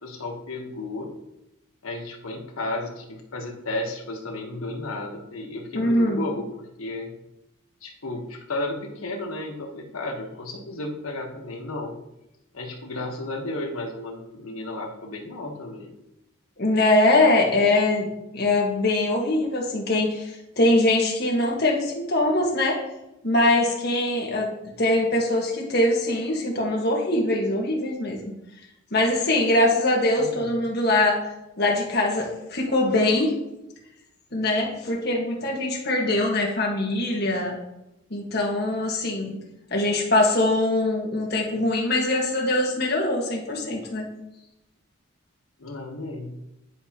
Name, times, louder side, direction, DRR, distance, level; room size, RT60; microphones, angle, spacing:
voice 1, 0.0-1.1 1.8-7.1 7.8-11.9 12.5-15.9 30.2-30.4 45.6-46.4, left 2 dB, 90° left, 2 dB, 1.3 m, -33 dB
voice 2, 5.7-6.2 16.6-18.1 18.3-22.8 23.2-24.5 24.8-28.2 28.9-31.2 31.6-33.3 34.3-37.6 38.1-39.3 39.7-44.1, left 2 dB, 50° left, -1 dB, 1.5 m, -22 dB
10.0 x 5.0 x 2.9 m, 0.88 s
head